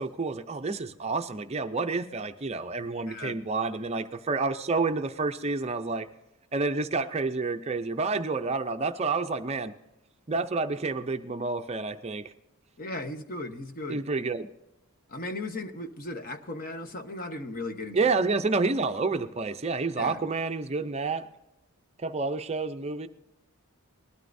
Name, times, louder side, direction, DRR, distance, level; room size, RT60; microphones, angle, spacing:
voice 1, 0.0-6.1 6.5-9.7 10.3-12.3 13.9-14.5 17.9-21.3 22.0-23.1, right 3 dB, 30° right, 7 dB, 0.5 m, -29 dB
voice 2, 3.1-3.4 12.8-14.0 15.1-18.1 20.0-20.2, left 2 dB, 40° left, 7 dB, 1.0 m, -36 dB
20.5 x 12.5 x 2.6 m, 0.94 s
head